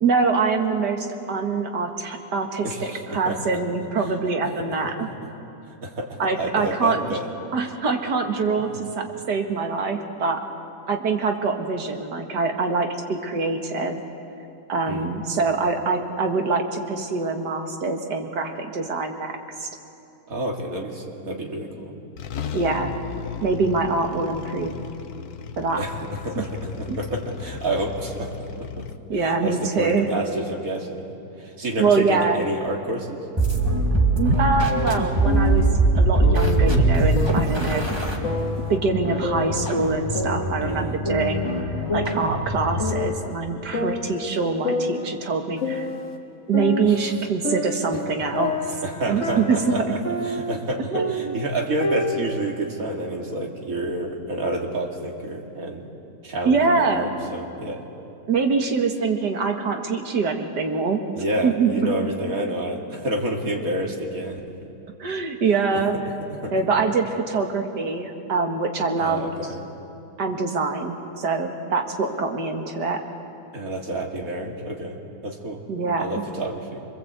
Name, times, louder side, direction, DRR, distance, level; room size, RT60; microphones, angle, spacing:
voice 1, 0.0-5.1 6.2-7.1 7.5-10.4 10.9-14.0 14.7-19.7 22.5-23.0 23.4-24.7 25.6-25.8 26.9-27.0 29.1-30.1 31.8-32.4 34.2-35.7 35.9-37.9 38.7-45.9 46.5-48.8 49.1-49.7 50.5-50.6 50.9-51.4 56.4-57.1 58.3-61.0 61.4-61.9 65.0-65.9 66.5-69.2 70.2-73.0 75.7-76.2, right 4 dB, 80° right, 4 dB, 2.3 m, -24 dB
voice 2, 2.6-3.6 4.0-4.1 4.6-4.7 5.7-7.3 8.7-8.8 14.9-15.1 20.3-21.9 25.7-28.3 28.6-28.9 29.2-31.0 31.4-33.2 40.6-40.9 46.8-47.1 48.1-48.2 48.8-55.9 56.2-57.8 61.1-64.4 65.7-65.8 66.2-66.5 69.0-69.6 73.5-75.0 75.2-75.6 76.0-76.8, right 1 dB, 55° right, 1 dB, 2.9 m, -29 dB
sound 1, 21.7-21.8 22.2-29.0, left 8 dB, 65° left, 1.4 m, -36 dB
sound 2, 33.4-43.1, right 2 dB, 15° right, 2.2 m, -22 dB
sound 3, 34.7-35.7 36.2-36.7 37.2-38.8 39.2-40.8 41.0-42.5 42.8-43.3 43.7-46.2 46.5-50.6 50.9-52.3, left 2 dB, 45° left, 2.1 m, -29 dB
26.5 x 21.0 x 8.1 m, 2.8 s
omnidirectional pair, 1.7 m